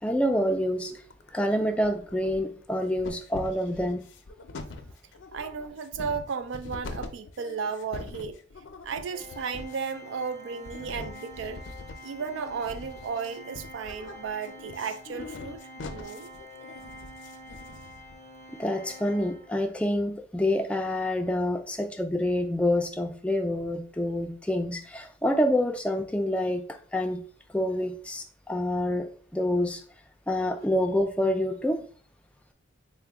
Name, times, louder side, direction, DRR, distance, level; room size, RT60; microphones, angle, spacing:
voice 1, 0.0-1.0 1.3-4.1 18.6-27.2 27.5-29.8 30.3-31.8, left 1 dB, 5° left, 0.3 m, -27 dB
sound 1, 1.0-1.5 1.8-2.7 3.0-18.1, left 3 dB, 75° left, 0.5 m, -43 dB
voice 2, 5.3-8.4 8.8-11.6 12.0-15.6 15.9-16.3, right 5 dB, 75° right, 0.3 m, -34 dB
Organ, 9.1-19.8, left 1 dB, 45° right, 1.6 m, -47 dB
3.7 x 2.1 x 3.4 m
head